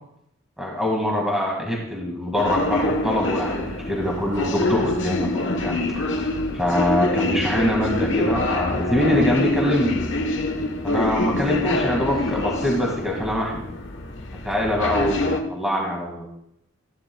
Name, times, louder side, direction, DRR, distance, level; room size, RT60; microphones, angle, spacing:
voice 1, 0.6-5.3 5.6-5.8 6.1-6.2 6.5-10.0 10.8-13.6 14.4-16.3, left 1 dB, ahead, -2 dB, 1.9 m, -23 dB
sound 1, 2.4-15.4, left 2 dB, 60° left, 1.1 m, -25 dB
15.5 x 11.5 x 2.3 m, 0.76 s
head